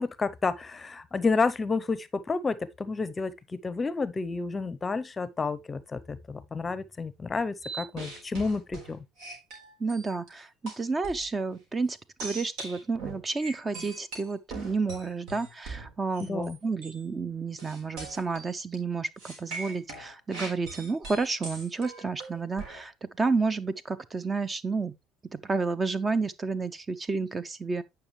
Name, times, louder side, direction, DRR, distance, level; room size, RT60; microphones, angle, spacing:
voice 1, 0.0-9.0 16.2-16.6, left 4 dB, 25° left, 0.7 m, -30 dB
sound 1, 7.6-10.3 10.7-11.3 12.2-16.6 16.8-17.0 17.6-18.7 19.2-22.8, right 3 dB, 75° right, 4.0 m, -41 dB
voice 2, 9.8-24.9 25.3-27.8, right 4 dB, 25° right, 0.7 m, -31 dB
8.9 x 5.8 x 3.2 m
supercardioid pair, 90°, 0 cm